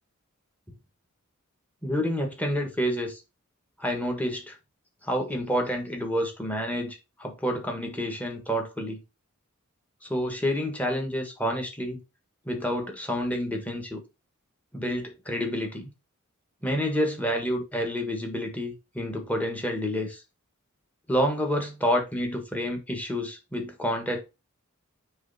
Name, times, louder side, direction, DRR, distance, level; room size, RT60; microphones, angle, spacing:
voice 1, 1.8-3.2 3.8-4.5 5.0-9.0 10.0-12.0 12.4-14.0 14.7-15.9 16.6-20.2 21.1-24.2, equal, 5° left, 1.6 m, -29 dB
9.1 x 3.3 x 4.2 m
head